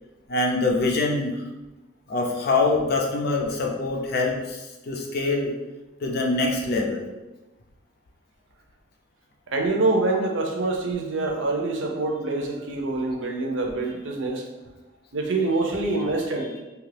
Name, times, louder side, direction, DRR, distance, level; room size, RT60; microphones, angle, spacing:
voice 1, 0.3-1.5 2.1-5.5 6.0-7.0, left 3 dB, 55° left, 0 dB, 0.5 m, -24 dB
voice 2, 9.5-14.5 15.1-16.6, right 2 dB, 75° right, 1 dB, 0.6 m, -25 dB
2.9 x 2.4 x 3.3 m, 1.1 s
head